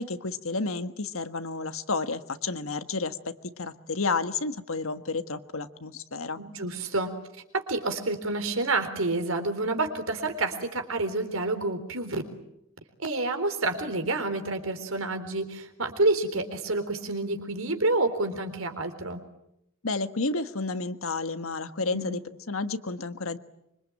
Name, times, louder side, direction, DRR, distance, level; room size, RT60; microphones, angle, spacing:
voice 1, 0.0-6.4 19.8-23.4, left 3 dB, 85° left, 10 dB, 1.5 m, -31 dB
voice 2, 6.4-7.1 7.5-12.2 13.0-19.2 21.9-22.1, right 2 dB, 85° right, 7 dB, 3.9 m, -28 dB
25.5 x 25.0 x 8.9 m, 0.81 s
head